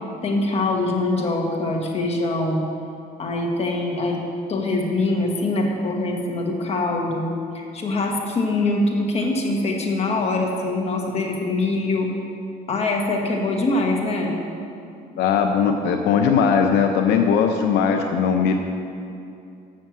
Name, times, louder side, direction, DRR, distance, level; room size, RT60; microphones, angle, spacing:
voice 1, 0.2-2.6 3.2-4.2 4.5-12.1 12.7-14.4, left 2 dB, 40° left, 0 dB, 1.5 m, -23 dB
voice 2, 15.2-18.6, left 6 dB, 80° left, 4 dB, 0.6 m, -19 dB
7.6 x 6.5 x 7.3 m, 2.6 s
cardioid pair, 110°, 17 cm